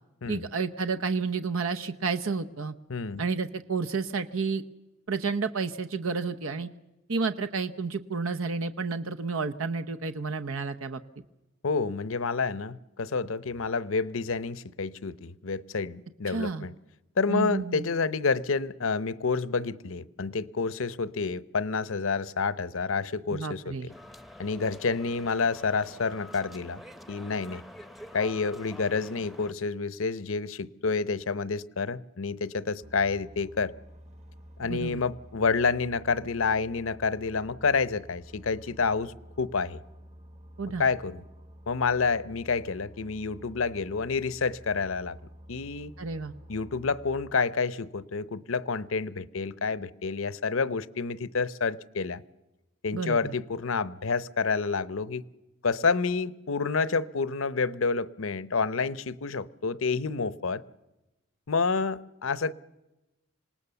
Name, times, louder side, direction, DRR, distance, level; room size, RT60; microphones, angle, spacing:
voice 1, 0.3-2.7 3.2-4.6 5.1-6.7 7.1-11.0 16.3-16.7 17.3-17.9 23.3-23.9 34.7-35.0 40.6-40.8 46.0-46.3 52.9-53.3, right 4 dB, 85° right, 0.9 m, -30 dB
voice 2, 2.9-3.3 11.6-16.7 17.2-23.9 24.4-26.8 27.1-27.6 28.1-33.7 34.6-39.8 40.8-41.2 41.7-45.2 45.5-45.9 46.5-52.2 52.8-55.2 55.6-60.6 61.5-62.5, left 4 dB, 75° left, 0.8 m, -29 dB
sound 1, 23.9-29.5, left 1 dB, ahead, 0.7 m, -47 dB
sound 2, 32.8-47.3, equal, 35° right, 1.1 m, -50 dB
26.5 x 19.0 x 6.9 m
head